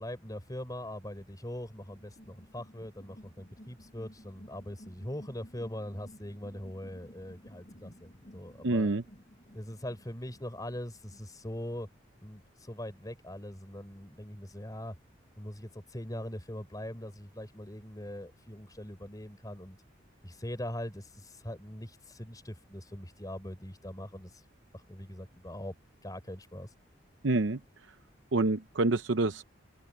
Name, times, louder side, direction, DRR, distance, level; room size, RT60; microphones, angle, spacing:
voice 1, 0.0-8.9 9.5-11.9 12.2-14.9 15.4-19.8 20.2-24.3 24.7-25.7 26.0-26.7, left 1 dB, 20° left, 4.7 m, -41 dB
sound 1, 1.8-11.8, equal, 40° left, 6.7 m, -55 dB
voice 2, 8.6-9.0 27.2-27.6 28.3-29.4, right 2 dB, 75° right, 0.8 m, -27 dB
open air
head